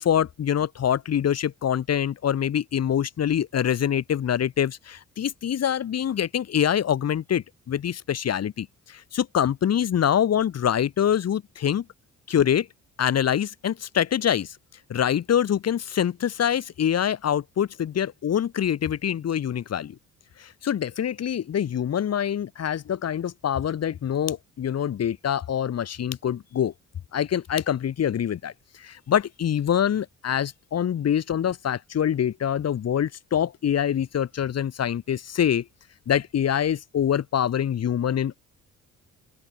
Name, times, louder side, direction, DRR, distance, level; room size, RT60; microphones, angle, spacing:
voice 1, 0.0-11.8 12.3-12.7 13.0-14.5 14.9-20.0 20.4-26.7 27.1-28.5 28.8-35.6 36.1-38.4, left 9 dB, 55° left, 2.2 m, -25 dB
open air
cardioid pair, 90°, 30 cm